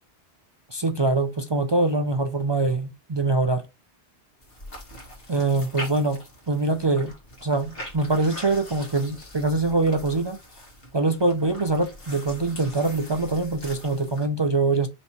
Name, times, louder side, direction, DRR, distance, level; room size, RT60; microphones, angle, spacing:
voice 1, 0.7-3.6 5.3-6.2 6.5-7.1 7.4-10.4 10.9-14.9, right 3 dB, 45° right, 0.3 m, -23 dB
sound 1, 4.4-14.3, left 1 dB, 60° left, 2.0 m, -42 dB
5.4 x 3.2 x 2.9 m
omnidirectional pair, 1.1 m